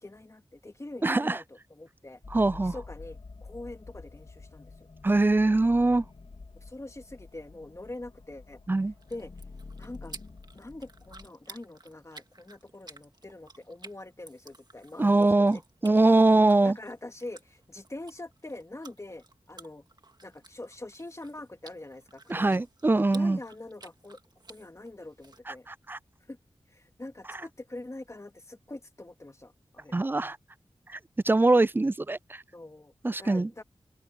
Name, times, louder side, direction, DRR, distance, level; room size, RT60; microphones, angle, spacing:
voice 1, 0.0-2.2 2.6-4.7 6.6-8.6 9.1-9.3 9.8-10.2 10.5-15.6 16.6-19.8 20.2-22.7 23.1-24.2 24.5-25.7 26.3-26.4 26.7-30.0 32.5-32.9 33.2-33.6, left 2 dB, 30° left, 2.5 m, -44 dB
voice 2, 1.0-1.4 2.3-2.7 5.0-6.0 8.7-8.9 15.0-16.8 22.3-23.4 25.5-26.0 29.9-30.4 31.2-32.4 33.0-33.5, right 2 dB, 20° right, 0.4 m, -23 dB
sound 1, 2.2-11.3, left 3 dB, 65° left, 3.3 m, -48 dB
sound 2, 8.8-25.4, right 3 dB, 45° right, 1.8 m, -53 dB
open air
wide cardioid pair, 60°, 10 cm